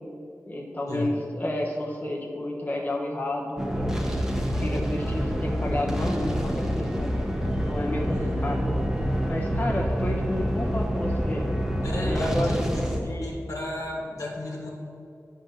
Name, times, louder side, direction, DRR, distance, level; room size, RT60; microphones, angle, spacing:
voice 1, 0.5-7.1 7.6-8.7 9.3-11.4 12.0-12.7, left 1 dB, 30° left, -2 dB, 1.1 m, -31 dB
sound 1, 3.6-13.0, equal, 10° right, 1.1 m, -27 dB
voice 2, 8.1-8.4 11.8-14.7, left 1 dB, 75° left, -2 dB, 1.7 m, -33 dB
8.7 x 3.9 x 6.7 m, 2.5 s
wide cardioid pair, 55°, 6 cm